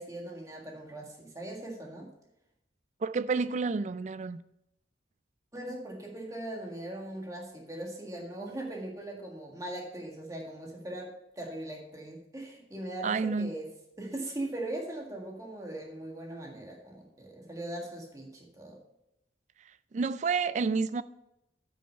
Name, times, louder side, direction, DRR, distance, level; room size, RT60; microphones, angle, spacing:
voice 1, 0.0-2.1 5.5-13.7 14.0-18.8, right 1 dB, 20° right, 1.8 m, -40 dB
voice 2, 3.0-4.4 13.0-13.5 19.9-21.0, right 4 dB, 40° right, 0.3 m, -29 dB
8.8 x 6.2 x 5.5 m
head